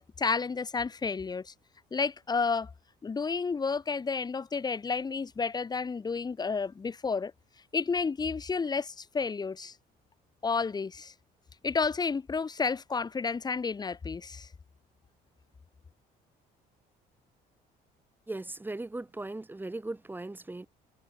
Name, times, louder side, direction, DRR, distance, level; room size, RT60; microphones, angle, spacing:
voice 1, 0.0-1.5 1.9-2.7 3.0-7.3 7.7-9.7 10.4-11.1 11.6-14.5, left 5 dB, 25° left, 1.1 m, -31 dB
voice 2, 18.3-20.7, right 2 dB, 10° right, 2.7 m, -38 dB
cardioid pair, 110°, 17 cm